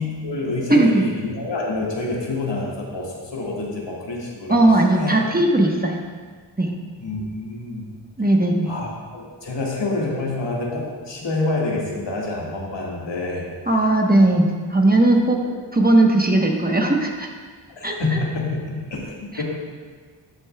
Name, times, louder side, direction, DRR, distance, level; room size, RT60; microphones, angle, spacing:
voice 1, 0.0-4.6 5.0-5.1 7.0-7.9 8.7-13.4 14.2-14.3 17.8-19.4, left 2 dB, 65° left, -3 dB, 1.9 m, -27 dB
voice 2, 0.7-1.0 4.5-6.0 6.6-6.7 8.2-8.7 13.7-15.4 15.7-17.3 17.8-18.0 19.3-19.4, right 2 dB, 20° right, 1 dB, 1.1 m, -17 dB
12.5 x 7.0 x 2.3 m, 1.5 s
cardioid pair, 50°, 47 cm